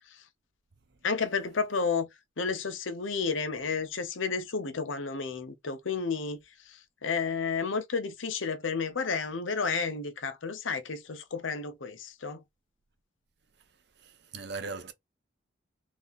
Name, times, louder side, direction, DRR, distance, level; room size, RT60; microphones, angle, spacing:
voice 1, 1.0-2.1 2.4-6.4 6.7-12.4, left 5 dB, 85° left, 0.8 m, -31 dB
voice 2, 14.0-14.9, right 4 dB, 60° right, 0.7 m, -39 dB
3.4 x 2.8 x 4.0 m
head